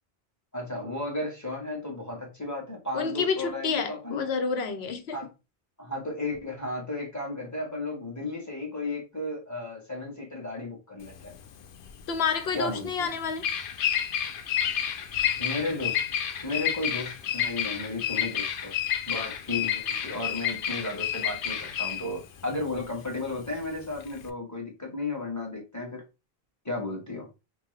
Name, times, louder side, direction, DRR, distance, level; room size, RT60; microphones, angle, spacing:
voice 1, 0.5-4.3 5.1-5.3 5.8-11.3 12.5-13.1 15.4-16.0 16.4-18.7 19.1-26.0 26.6-27.3, left 2 dB, 15° left, 1.3 m, -34 dB
voice 2, 2.9-5.2 12.1-13.5, left 5 dB, 85° left, 1.0 m, -29 dB
Bird vocalization bird call bird song, 11.0-24.3, left 9 dB, 65° left, 0.7 m, -30 dB
5.2 x 2.2 x 3.1 m
omnidirectional pair, 1.0 m